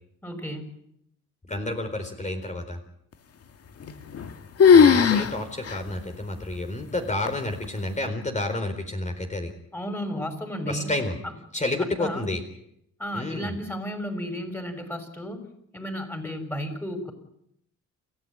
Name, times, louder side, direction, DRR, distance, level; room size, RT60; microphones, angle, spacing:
voice 1, 0.2-0.7 9.7-10.9 11.2-11.3 12.0-12.3 13.0-15.4 15.7-17.1, equal, 5° left, 7 dB, 6.2 m, -33 dB
voice 2, 1.5-2.8 4.7-9.5 10.7-11.2 11.5-12.4 13.1-13.6, left 2 dB, 25° left, 5 dB, 4.2 m, -30 dB
sound 1, 3.8-4.3 4.6-5.3 5.7-5.8 6.4-6.5 7.3-7.7, left 6 dB, 55° left, 2.0 m, -16 dB
29.0 x 15.0 x 9.1 m, 0.76 s
cardioid pair, 90°, 30 cm